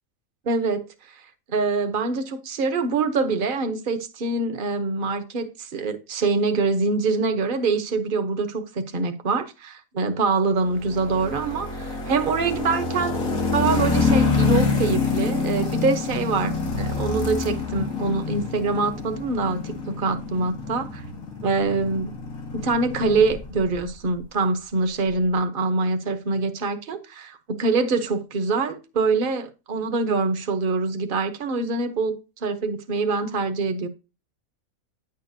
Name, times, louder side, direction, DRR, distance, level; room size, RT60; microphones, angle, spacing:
voice 1, 0.4-0.8 1.5-21.0 21.4-22.1 22.5-33.9, right 4 dB, 40° right, 1.1 m, -24 dB
sound 1, 10.7-23.8, left 4 dB, 85° left, 2.3 m, -26 dB
9.9 x 6.6 x 2.7 m
omnidirectional pair, 1.4 m